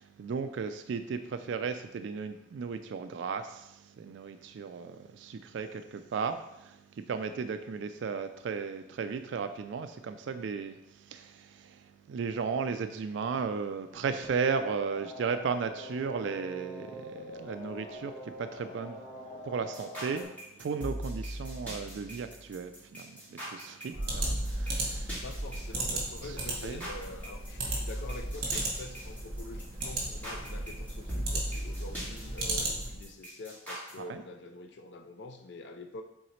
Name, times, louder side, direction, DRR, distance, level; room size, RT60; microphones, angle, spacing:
voice 1, 0.0-6.8 7.1-10.8 11.1-11.8 12.1-19.0 19.4-20.3 20.6-25.2 26.6-26.9 34.0-34.2, right 5 dB, 65° right, 9 dB, 0.3 m, -35 dB
sound 1, 14.2-20.2, equal, 35° left, 1.2 m, -44 dB
sound 2, 19.7-33.9, equal, 10° left, 2.0 m, -38 dB
voice 2, 23.9-24.3 25.2-36.0, left 3 dB, 60° left, 6 dB, 0.4 m, -46 dB
sound 3, 23.9-33.1, right 2 dB, 45° right, 1.5 m, -36 dB
7.7 x 3.9 x 3.1 m, 0.88 s
head